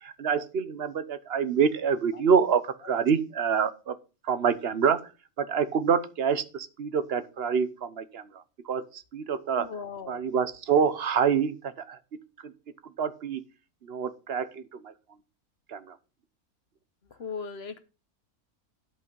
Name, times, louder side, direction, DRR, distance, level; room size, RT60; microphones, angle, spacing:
voice 1, 0.0-4.0 4.2-5.0 5.4-9.7 10.1-12.0 12.4-12.5 13.0-13.4 13.8-14.9 15.7-16.0, right 6 dB, 50° right, 13 dB, 1.0 m, -27 dB
voice 2, 9.6-10.3 17.2-17.8, left 5 dB, 50° left, 10 dB, 1.1 m, -38 dB
11.5 x 5.5 x 5.4 m, 0.32 s
omnidirectional pair, 1.5 m